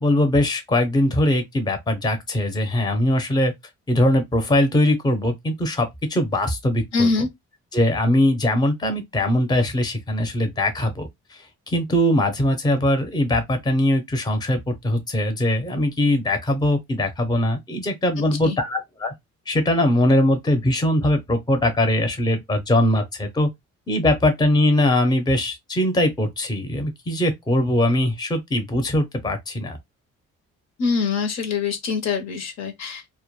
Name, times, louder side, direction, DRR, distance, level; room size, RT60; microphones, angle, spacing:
voice 1, 0.0-3.5 3.9-7.1 7.7-19.1 19.5-23.5 23.9-29.8, left 1 dB, 15° left, 0.6 m, -21 dB
voice 2, 6.9-7.3 18.3-18.6 30.8-33.0, left 4 dB, 60° left, 0.7 m, -24 dB
2.1 x 2.1 x 2.9 m
cardioid pair, 90°, 30 cm